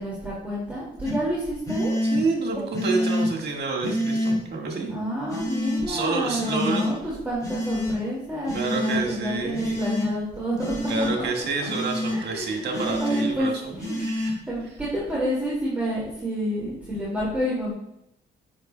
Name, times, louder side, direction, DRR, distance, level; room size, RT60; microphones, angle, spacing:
voice 1, 0.0-1.9 4.9-10.9 12.1-17.7, equal, 10° right, -7 dB, 2.2 m, -29 dB
sound 1, 1.0-1.1 1.7-2.2 2.7-3.3 3.8-4.4 5.3-5.8 6.4-6.9 7.4-7.9 8.5-9.0 9.5-10.1 10.6-11.1 11.6-12.2 12.7-13.2 13.8-14.3, left 1 dB, 15° left, 2.3 m, -27 dB
voice 2, 2.1-5.0 5.9-6.8 8.5-9.8 10.9-14.4, right 3 dB, 60° right, 1 dB, 1.7 m, -28 dB
8.0 x 5.8 x 2.2 m, 0.79 s
cardioid pair, 90°, 20 cm